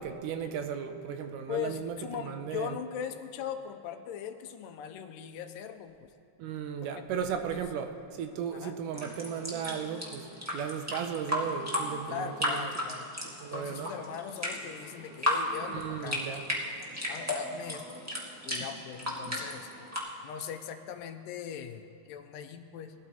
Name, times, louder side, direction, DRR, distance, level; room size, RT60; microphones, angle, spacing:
voice 1, 0.0-2.8 6.4-12.6 13.4-13.9 15.7-16.4, right 7 dB, 75° right, 7 dB, 2.1 m, -36 dB
voice 2, 1.5-6.1 6.8-7.1 7.6-7.7 8.5-8.8 12.1-13.1 13.5-16.3 17.1-18.0 18.5-19.8 20.2-22.9, left 8 dB, 85° left, 7 dB, 2.3 m, -40 dB
sound 1, 8.9-20.0, left 1 dB, 15° right, 0.5 m, -35 dB
19.5 x 12.5 x 3.0 m, 2.9 s
omnidirectional pair, 3.9 m